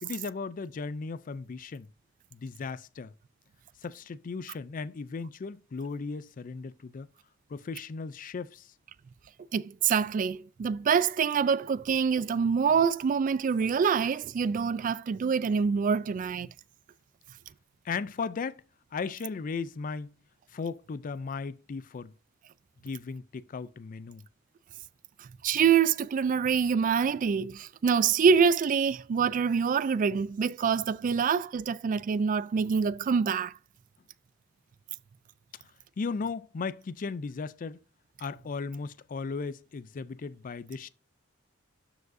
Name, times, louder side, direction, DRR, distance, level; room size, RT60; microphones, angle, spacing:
voice 1, 0.0-1.9 2.3-3.1 3.8-7.1 7.5-8.7 17.8-18.6 18.9-20.1 20.5-22.1 22.8-24.3 36.0-37.8 38.2-40.9, left 4 dB, 45° left, 0.4 m, -36 dB
voice 2, 9.5-16.5 25.2-33.5, right 6 dB, 40° right, 0.3 m, -26 dB
12.5 x 4.8 x 2.6 m
head